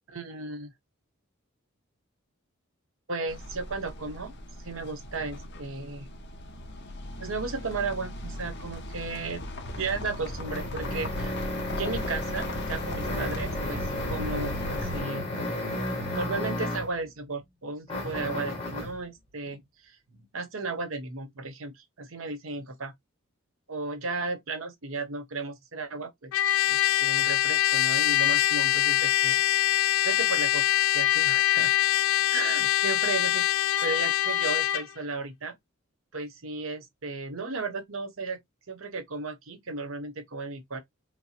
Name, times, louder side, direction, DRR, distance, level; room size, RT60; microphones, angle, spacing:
voice 1, 0.1-0.7 3.1-4.3 4.6-6.1 7.2-9.4 9.8-11.3 11.7-13.8 14.1-15.3 16.1-19.6 20.3-22.9 23.7-26.3 26.7-30.6 30.9-31.7 32.3-33.5 33.8-35.6 36.1-38.4 38.7-40.8, right 3 dB, 75° right, 0.9 m, -35 dB
sound 1, 3.3-15.0, left 1 dB, 55° left, 0.8 m, -38 dB
sound 2, 9.8-17.0 17.9-19.0, left 1 dB, 25° left, 1.4 m, -33 dB
Trumpet, 26.3-34.9, left 14 dB, 90° left, 0.5 m, -24 dB
5.2 x 2.0 x 2.9 m
head